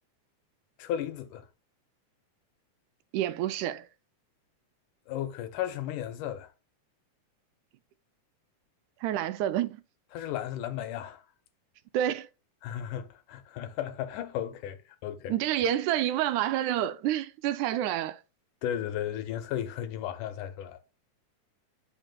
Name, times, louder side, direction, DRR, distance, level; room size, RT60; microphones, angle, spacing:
voice 1, 0.8-1.5 5.1-6.5 10.1-11.2 12.6-15.3 18.6-20.8, left 11 dB, 85° left, 2.4 m, -34 dB
voice 2, 3.1-3.9 9.0-9.8 11.9-12.3 15.3-18.2, right 12 dB, 80° right, 1.9 m, -28 dB
9.0 x 5.8 x 2.3 m
omnidirectional pair, 3.6 m